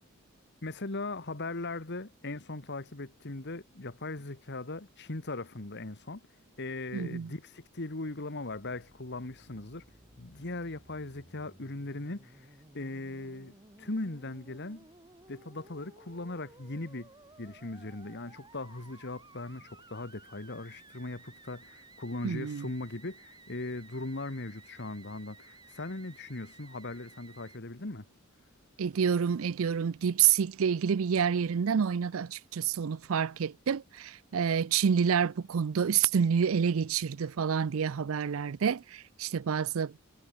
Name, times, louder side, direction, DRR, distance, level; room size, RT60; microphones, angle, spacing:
voice 1, 0.6-6.2 6.6-9.8 10.2-14.9 15.3-17.1 17.4-28.1, left 2 dB, 55° left, 1.8 m, -39 dB
voice 2, 6.9-7.3 22.2-22.7 28.8-39.9, right 7 dB, 70° right, 0.5 m, -28 dB
Musical instrument, 8.5-27.6, right 3 dB, 20° right, 2.6 m, -57 dB
head